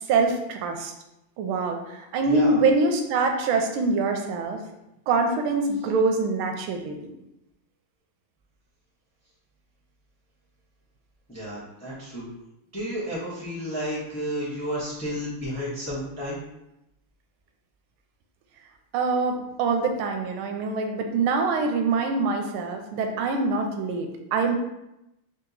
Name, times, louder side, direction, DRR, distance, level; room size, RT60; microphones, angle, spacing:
voice 1, 0.1-0.9 1.4-4.6 5.1-7.0 18.9-24.6, right 3 dB, 80° right, 4 dB, 1.4 m, -24 dB
voice 2, 2.3-2.6 11.3-12.3 12.7-16.4, equal, 15° left, -9 dB, 0.7 m, -31 dB
3.6 x 2.8 x 3.8 m, 0.89 s
omnidirectional pair, 2.3 m